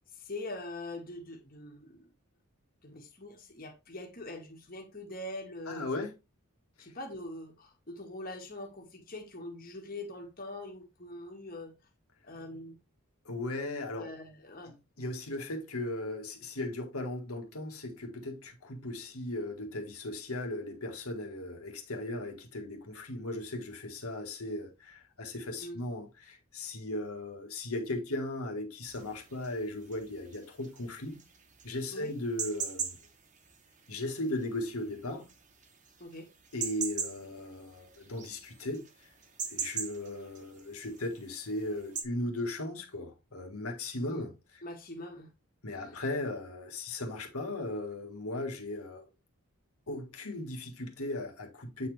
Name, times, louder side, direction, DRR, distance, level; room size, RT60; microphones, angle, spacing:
voice 1, 0.1-2.1 2.8-5.9 6.8-11.7 12.2-12.8 13.9-14.7 25.6-25.8 31.9-32.1 36.0-36.3 44.1-44.2 44.6-45.3 45.7-46.0, left 1 dB, 40° left, 1.8 m, -43 dB
voice 2, 5.7-6.1 6.8-6.9 13.2-14.1 15.0-31.2 31.6-33.0 33.9-35.3 36.5-38.8 39.5-44.3 45.6-49.1 49.9-51.9, left 1 dB, 85° left, 1.8 m, -37 dB
sound 1, 28.8-42.0, right 6 dB, 35° right, 1.1 m, -41 dB
8.5 x 4.2 x 3.4 m
head